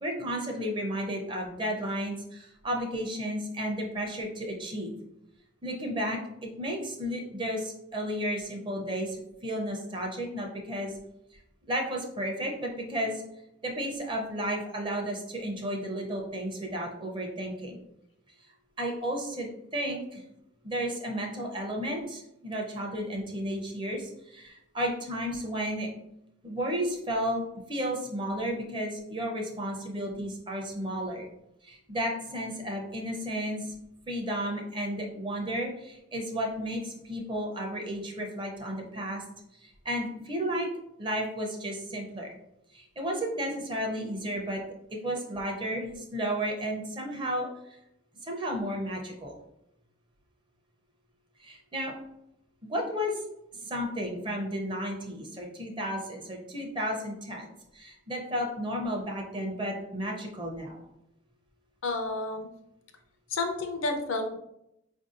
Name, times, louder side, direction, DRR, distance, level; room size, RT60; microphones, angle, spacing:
voice 1, 0.0-4.9 5.6-10.9 11.7-13.2 13.6-17.8 18.8-20.2 20.6-25.9 26.4-27.4 27.7-31.3 31.6-33.7 34.1-39.2 39.6-40.7 41.0-42.3 42.7-44.6 44.9-47.5 48.2-49.3 51.4-51.9 52.7-53.1 53.6-60.8, equal, 25° right, 0 dB, 0.6 m, -33 dB
voice 2, 61.8-62.5 63.3-64.3, left 3 dB, 85° left, 4 dB, 0.5 m, -30 dB
4.4 x 2.6 x 2.5 m, 0.83 s
head